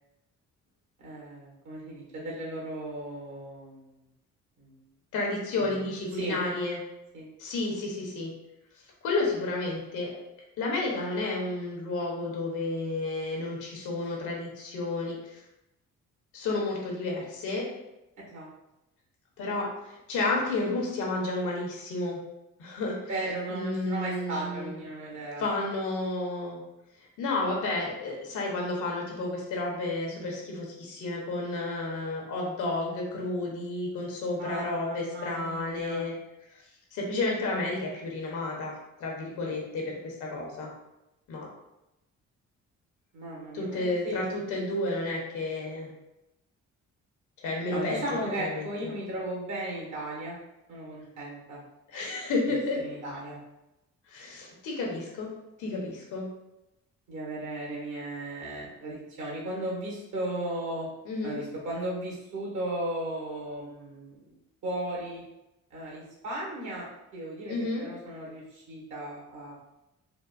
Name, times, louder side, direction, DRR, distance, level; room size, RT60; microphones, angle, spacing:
voice 1, 1.0-3.8 4.6-4.7 5.6-5.7 6.2-6.4 7.1-7.3 18.3-18.5 23.1-25.4 34.4-36.0 43.1-44.3 47.7-50.4 50.7-51.6 52.8-53.4 57.1-60.9 61.2-64.4 64.6-65.2 65.7-66.9 67.1-69.5, right 1 dB, 70° right, -3 dB, 1.5 m, -36 dB
voice 2, 5.1-6.8 7.4-8.3 9.0-10.1 10.6-15.4 16.3-17.7 19.4-22.2 22.6-23.0 23.5-24.7 25.4-26.6 27.0-36.1 36.5-36.6 36.9-40.7 41.3-41.5 43.5-45.9 47.4-48.9 51.9-52.8 54.1-55.3 55.6-56.3 61.0-61.4 67.5-67.8, left 2 dB, 90° left, -1 dB, 1.0 m, -31 dB
3.9 x 2.3 x 2.5 m, 0.92 s
cardioid pair, 90°, 30 cm